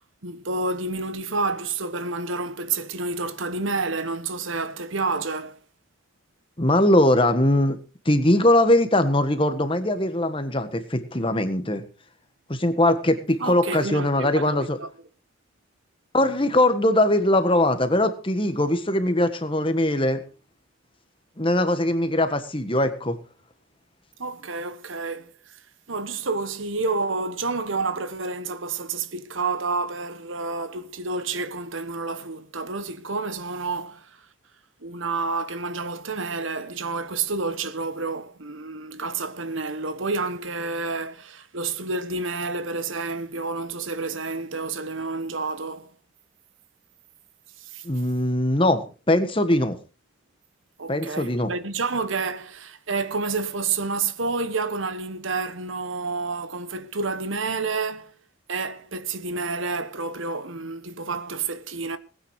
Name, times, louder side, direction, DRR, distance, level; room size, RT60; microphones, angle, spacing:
voice 1, 0.2-5.6 13.4-14.9 24.2-25.6 25.9-34.2 34.8-45.9 47.6-47.8 50.8-58.1 58.5-62.0, right 3 dB, 80° right, 1.3 m, -29 dB
voice 2, 6.6-7.8 8.0-11.8 12.5-14.8 16.1-20.2 21.4-23.2 47.8-49.8 50.9-51.5, left 1 dB, 25° left, 1.5 m, -21 dB
20.0 x 9.3 x 4.8 m
head